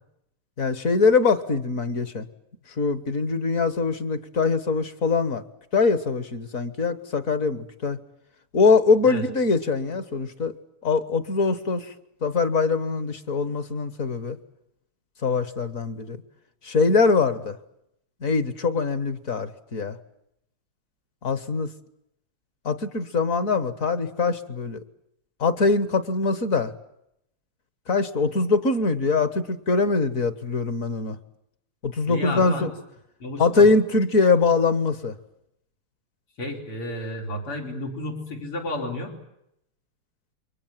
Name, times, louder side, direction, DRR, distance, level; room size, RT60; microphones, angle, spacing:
voice 1, 0.6-2.2 2.8-5.4 5.7-8.0 8.5-10.5 10.8-11.9 12.2-14.4 15.2-16.2 16.6-17.6 18.2-20.0 21.2-21.7 22.6-24.8 25.4-26.7 27.9-31.2 31.8-32.7 33.4-35.1, left 4 dB, 45° left, 13 dB, 1.5 m, -22 dB
voice 2, 32.1-32.7 33.2-33.6 36.4-39.1, left 1 dB, 85° left, 1 dB, 5.6 m, -31 dB
29.0 x 23.5 x 7.5 m, 0.80 s
omnidirectional pair, 2.4 m